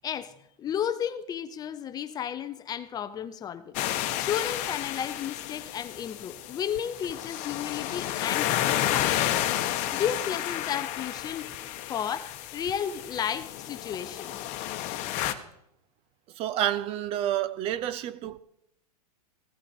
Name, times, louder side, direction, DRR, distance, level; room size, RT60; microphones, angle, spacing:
voice 1, 0.0-3.8 4.2-9.3 9.9-11.5 11.9-14.5, left 9 dB, 20° left, 0.6 m, -33 dB
sound 1, 3.7-15.3, left 13 dB, 35° left, 1.2 m, -31 dB
voice 2, 16.3-18.4, right 12 dB, 30° right, 0.5 m, -29 dB
16.0 x 13.0 x 4.3 m
hypercardioid pair, 135°, 21 cm